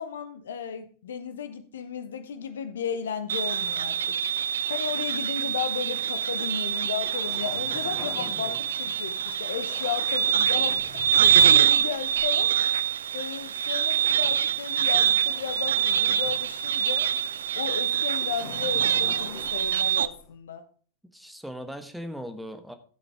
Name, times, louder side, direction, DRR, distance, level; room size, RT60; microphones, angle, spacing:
voice 1, 0.0-4.2 4.7-12.5 13.1-17.1 17.5-20.6, left 7 dB, 65° left, 1.1 m, -34 dB
sound 1, 3.3-20.1, right 9 dB, 65° right, 0.4 m, -25 dB
Waves surf, 6.7-20.3, left 5 dB, 35° left, 3.0 m, -47 dB
voice 2, 21.0-22.7, equal, ahead, 1.2 m, -39 dB
13.0 x 7.9 x 3.6 m
figure-of-eight pair, 90°, 0 cm